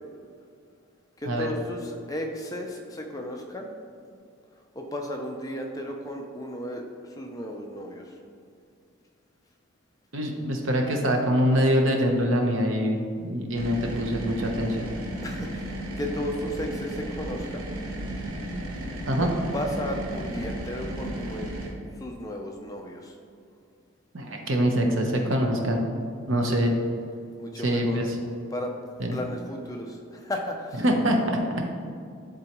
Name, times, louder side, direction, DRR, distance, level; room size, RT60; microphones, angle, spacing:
voice 1, 1.2-3.7 4.7-6.8 7.2-8.1 15.2-17.7 19.2-21.5 22.0-23.2 26.5-26.7 27.4-28.0 28.5-28.7 29.1-30.8, left 1 dB, 15° left, 2 dB, 0.5 m, -34 dB
voice 2, 10.1-14.9 19.1-19.3 24.1-25.8 26.3-26.7 27.6-28.2 29.0-29.2 30.8-31.4, equal, 65° right, 2 dB, 0.9 m, -24 dB
sound 1, 13.5-21.7, right 1 dB, 80° right, 1.1 m, -34 dB
11.0 x 3.8 x 3.0 m, 2.3 s
head